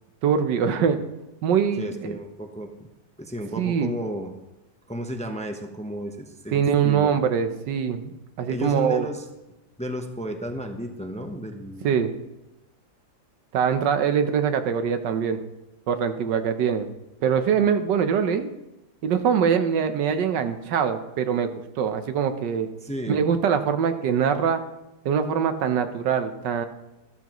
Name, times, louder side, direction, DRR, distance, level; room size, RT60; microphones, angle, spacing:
voice 1, 0.2-1.0 1.4-2.2 3.6-3.9 6.5-8.1 8.4-9.1 11.8-12.1 13.5-15.4 15.9-16.9 17.2-18.5 19.0-22.7 23.1-24.6 25.0-26.7, right 7 dB, 85° right, 8 dB, 1.5 m, -23 dB
voice 2, 1.8-2.7 3.2-4.3 4.9-7.1 8.5-9.2 9.8-11.9 22.8-23.2, equal, 10° left, 4 dB, 0.5 m, -33 dB
13.5 x 13.0 x 3.0 m, 1.0 s
omnidirectional pair, 1.8 m